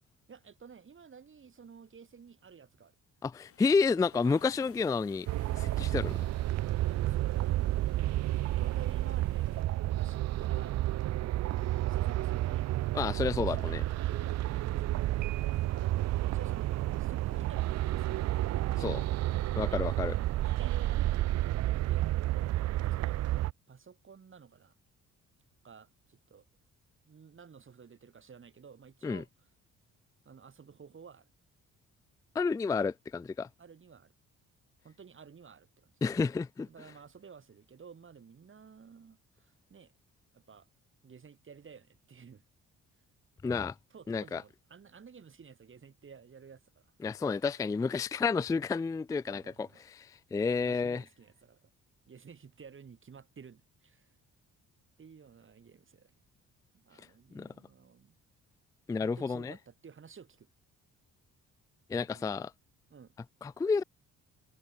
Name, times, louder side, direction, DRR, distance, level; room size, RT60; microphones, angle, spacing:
voice 1, 0.3-3.0 4.2-4.4 6.9-10.9 11.3-13.0 13.3-15.2 15.5-16.0 16.2-18.3 19.0-21.1 21.9-22.5 22.9-23.2 23.7-24.7 25.6-26.5 27.1-29.3 30.3-31.3 33.6-34.1 34.8-35.9 36.7-39.9 40.3-40.7 41.0-42.4 43.9-46.6 47.3-47.7 49.2-49.8 50.6-51.7 52.1-54.1 55.0-56.1 56.7-58.2 59.0-60.5 62.0-62.4 62.9-63.1, right 6 dB, 40° right, 5.9 m, -53 dB
voice 2, 3.2-5.3 5.5-6.1 12.9-13.8 18.8-19.0 19.6-20.2 29.0-29.2 32.4-33.5 36.0-36.7 43.4-43.7 44.1-44.4 47.0-49.7 50.0-51.0 57.3-57.5 58.9-59.5 61.9-62.5 63.4-63.8, left 4 dB, 10° left, 0.3 m, -30 dB
sound 1, 3.3-9.6, left 7 dB, 50° left, 3.9 m, -60 dB
sound 2, 5.3-23.5, right 15 dB, 60° right, 0.4 m, -31 dB
Piano, 15.2-16.2, right 13 dB, 80° right, 4.1 m, -49 dB
cardioid pair, 90°, 30 cm